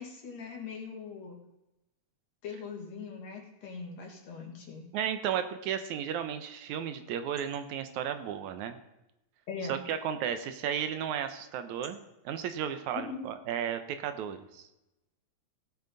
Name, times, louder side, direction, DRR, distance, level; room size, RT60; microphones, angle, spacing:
voice 1, 0.0-1.4 2.4-4.9 9.5-9.8 12.9-13.2, left 5 dB, 65° left, 0 dB, 3.1 m, -41 dB
voice 2, 4.9-8.8 9.7-12.0 12.3-14.7, right 9 dB, 85° right, 9 dB, 2.2 m, -34 dB
17.5 x 8.2 x 3.9 m, 0.93 s
omnidirectional pair, 3.3 m